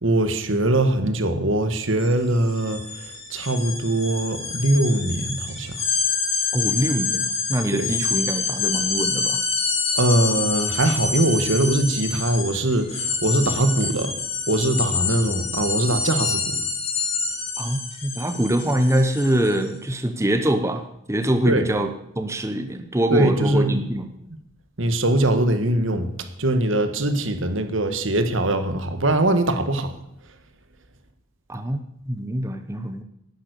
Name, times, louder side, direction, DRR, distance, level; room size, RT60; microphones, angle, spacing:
voice 1, 0.0-5.8 7.8-7.9 9.9-14.1 14.5-16.6 21.4-21.7 23.1-23.8 24.8-26.1 26.4-29.9, right 1 dB, 65° right, 9 dB, 1.7 m, -22 dB
sound 1, 1.9-2.1 2.4-19.6, left 4 dB, 30° left, 3.1 m, -27 dB
voice 2, 6.5-9.4 17.6-20.8 21.1-21.9 22.2-24.1 31.5-31.8 32.1-33.0, right 1 dB, 15° right, 7 dB, 0.9 m, -24 dB
11.5 x 11.0 x 8.2 m, 0.81 s
head